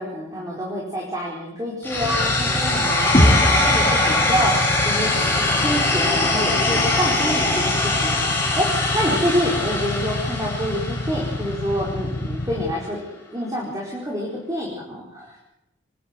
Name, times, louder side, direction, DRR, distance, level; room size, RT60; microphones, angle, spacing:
voice 1, 0.0-13.0 13.3-15.5, equal, 15° right, -3 dB, 4.7 m, -27 dB
sound 1, 1.8-11.8, left 2 dB, 10° left, 4.5 m, -22 dB
Motorcycle / Idling, 2.0-12.7, left 2 dB, 60° left, 1.1 m, -29 dB
sound 2, 3.1-7.1, equal, 30° left, 2.7 m, -24 dB
25.5 x 11.5 x 9.5 m, 0.88 s
head